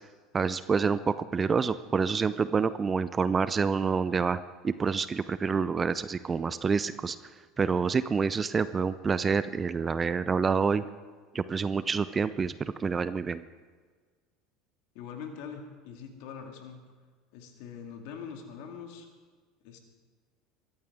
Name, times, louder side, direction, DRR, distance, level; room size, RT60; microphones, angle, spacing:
voice 1, 0.3-7.2 7.6-10.8 11.3-13.4, right 5 dB, 25° right, 15 dB, 0.6 m, -27 dB
voice 2, 14.9-16.8 17.3-19.1 19.6-19.8, left 6 dB, 60° left, 4 dB, 2.2 m, -43 dB
22.5 x 14.5 x 3.6 m, 1.5 s
hypercardioid pair, 70°, 0 cm